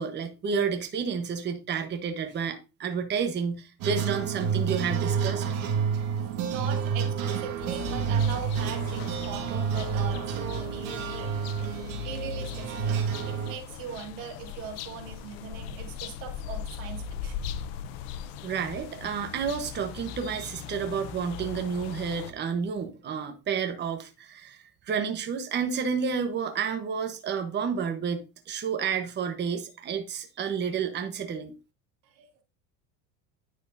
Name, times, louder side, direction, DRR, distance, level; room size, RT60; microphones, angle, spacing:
voice 1, 0.0-5.5 18.4-31.5, right 6 dB, 30° right, 1.1 m, -30 dB
sound 1, 3.8-13.5, right 7 dB, 65° right, 1.8 m, -29 dB
voice 2, 6.2-11.3 11.6-12.9 13.3-17.3 32.0-32.4, right 7 dB, 85° right, 2.2 m, -40 dB
sound 2, 7.6-22.3, left 8 dB, 85° left, 0.8 m, -39 dB
9.7 x 6.5 x 2.7 m
cardioid pair, 130°, 37 cm